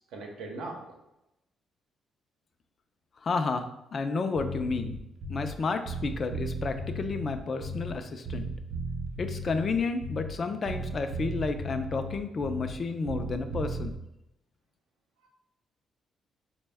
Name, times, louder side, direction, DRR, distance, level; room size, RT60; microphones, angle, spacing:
voice 1, 0.1-0.8 15.2-15.3, right 2 dB, 90° right, 0 dB, 0.7 m, -39 dB
voice 2, 3.2-5.0 5.3-8.5 9.2-13.9, left 4 dB, 45° left, 8 dB, 0.3 m, -31 dB
Bass guitar, 4.4-5.6 5.9-8.0 8.3-10.4 10.7-12.8 13.1-13.9, right 1 dB, 55° right, 0.5 m, -36 dB
4.2 x 2.1 x 3.4 m, 0.88 s
cardioid pair, 90°, 0 cm